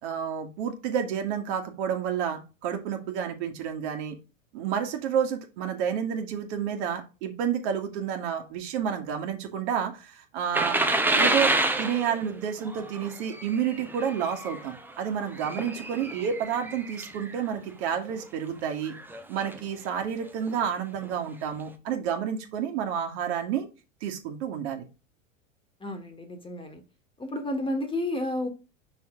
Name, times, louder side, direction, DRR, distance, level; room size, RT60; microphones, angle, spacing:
voice 1, 0.0-4.2 4.5-10.8 11.1-18.9 19.3-23.7 24.0-24.9, right 8 dB, 55° right, 1.8 m, -30 dB
sound 1, 10.5-17.4 18.0-18.2 18.9-19.6 20.5-20.6 21.0-21.1, right 2 dB, 5° right, 0.8 m, -29 dB
voice 2, 25.8-26.8 27.2-28.5, left 1 dB, 15° left, 1.6 m, -31 dB
6.1 x 4.8 x 3.7 m
hypercardioid pair, 100°, 39 cm